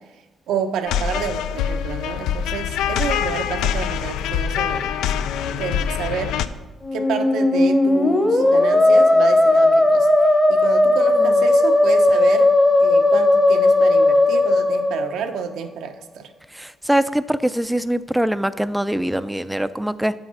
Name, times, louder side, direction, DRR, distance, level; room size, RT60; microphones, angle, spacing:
voice 1, 0.5-5.3 5.6-6.4 6.9-12.5 12.8-16.3, right 7 dB, 85° right, 6 dB, 0.7 m, -29 dB
sound 1, 0.9-6.5, left 8 dB, 90° left, 0.3 m, -24 dB
Musical instrument, 6.8-15.6, left 2 dB, 20° left, 0.9 m, -16 dB
voice 2, 16.6-20.1, right 1 dB, 5° right, 13 dB, 0.4 m, -22 dB
7.5 x 5.7 x 5.5 m, 1.1 s
cardioid pair, 90°, 0 cm